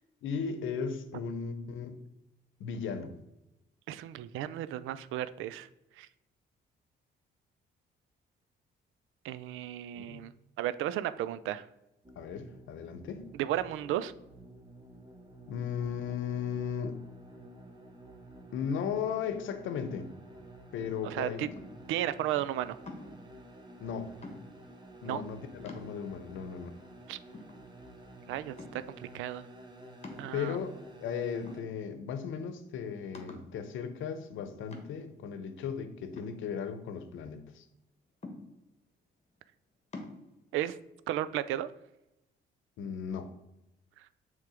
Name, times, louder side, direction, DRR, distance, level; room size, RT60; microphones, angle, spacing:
voice 1, 0.2-2.0 2.6-3.1 9.9-10.3 12.2-13.2 15.5-17.0 18.5-20.1 20.7-21.5 23.8-24.1 25.0-26.7 30.3-30.7 31.0-37.7 42.8-43.3, left 7 dB, 80° left, 10 dB, 0.8 m, -36 dB
voice 2, 3.9-5.7 6.0-6.1 9.2-10.3 10.6-11.6 13.3-14.1 21.0-21.5 21.9-22.8 25.0-25.3 27.1-27.2 28.3-29.5 30.2-30.6 40.5-40.8 41.1-41.7 44.0-44.1, right 12 dB, 90° right, 15 dB, 0.4 m, -34 dB
sound 1, 12.0-31.6, right 1 dB, 20° right, 1.1 m, -51 dB
sound 2, 21.5-21.9 22.9-23.3 24.2-24.7 25.2-25.3 25.7-26.3 26.8-26.9 27.3-28.1 28.6-29.0 30.0-30.8 31.5-32.1 32.4-32.5 33.1-33.6 34.7-35.2 36.1-37.0 38.2-38.8 39.9-40.2, left 2 dB, 35° left, 1.3 m, -47 dB
6.6 x 3.5 x 4.9 m, 0.91 s
cardioid pair, 90°, 20 cm